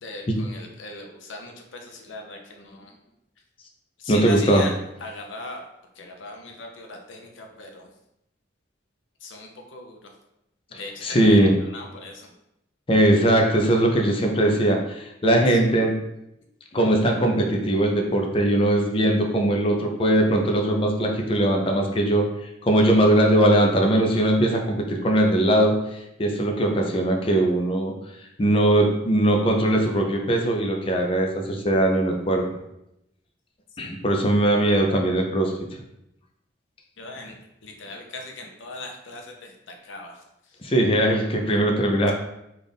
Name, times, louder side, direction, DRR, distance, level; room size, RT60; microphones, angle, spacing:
voice 1, 0.0-2.9 4.0-4.7 5.0-5.6 5.9-7.9 9.2-10.1 10.8-12.3 15.5-15.6 37.0-40.6, left 2 dB, 80° left, 2 dB, 0.7 m, -39 dB
voice 2, 4.1-4.7 10.7-11.6 12.9-16.0 16.7-22.3 22.6-27.9 28.4-32.4 33.8-35.8 40.6-42.1, right 1 dB, 30° left, 2 dB, 0.5 m, -20 dB
3.4 x 2.4 x 4.0 m, 0.84 s
head